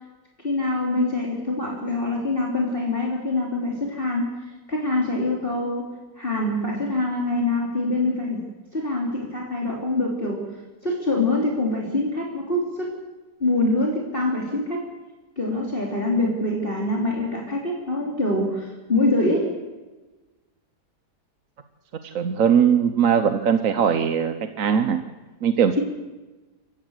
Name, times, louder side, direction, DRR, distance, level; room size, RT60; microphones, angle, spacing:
voice 1, 0.4-4.3 4.7-5.9 6.2-8.4 8.7-10.4 10.8-12.9 13.4-14.8 15.4-19.5, left 2 dB, 30° left, -2 dB, 3.4 m, -24 dB
voice 2, 22.0-25.0 25.4-25.8, right 7 dB, 55° right, 9 dB, 1.3 m, -20 dB
27.5 x 15.0 x 8.0 m, 1.2 s
omnidirectional pair, 1.8 m